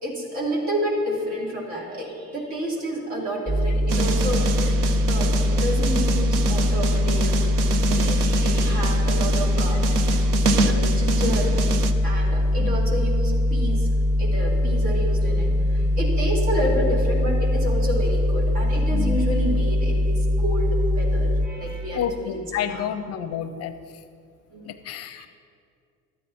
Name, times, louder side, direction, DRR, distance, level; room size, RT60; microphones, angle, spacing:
voice 1, 0.0-7.4 7.9-9.8 10.6-11.5 12.0-13.9 14.2-22.9 24.5-24.7, equal, 60° right, -3 dB, 3.0 m, -30 dB
sound 1, 3.5-21.5, left 1 dB, 15° right, 0.7 m, -22 dB
sound 2, 3.9-11.9, right 3 dB, 80° right, 0.8 m, -27 dB
voice 2, 21.9-23.7 24.7-25.3, left 8 dB, 35° left, 11 dB, 0.5 m, -30 dB
13.0 x 9.3 x 4.2 m, 2.3 s
figure-of-eight pair, 70°, 45 cm